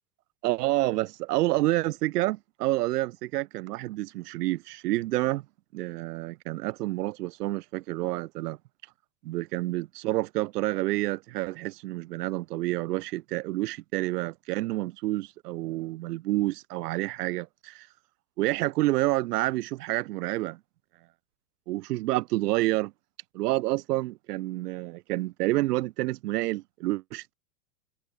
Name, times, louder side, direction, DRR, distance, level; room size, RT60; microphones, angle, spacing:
voice 1, 0.4-5.5 5.7-8.6 9.2-17.9 18.4-20.6 21.7-22.9 23.3-27.3, right 18 dB, 90° right, 0.7 m, -29 dB
supercardioid pair, 140°, 46 cm